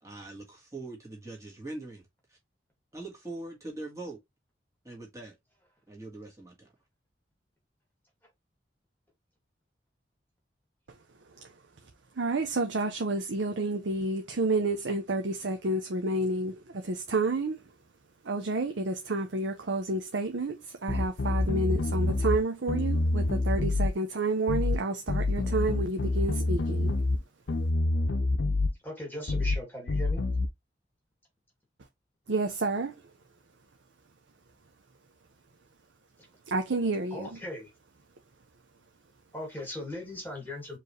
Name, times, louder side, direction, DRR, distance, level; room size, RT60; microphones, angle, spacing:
voice 1, 0.0-2.4 2.9-4.2 4.8-5.4 5.9-6.7, right 2 dB, 15° right, 1.7 m, -42 dB
voice 2, 12.2-17.6 18.2-26.9 32.3-32.9 36.5-37.3, right 2 dB, 75° right, 0.7 m, -30 dB
sound 1, 20.9-22.4 22.7-23.9 24.5-24.8 25.1-27.2 27.5-28.7 29.3-29.6 29.9-30.5, left 2 dB, 80° left, 0.6 m, -27 dB
voice 3, 28.8-30.2 37.1-37.7 39.3-40.8, left 1 dB, 10° left, 2.1 m, -38 dB
4.6 x 3.2 x 3.1 m
head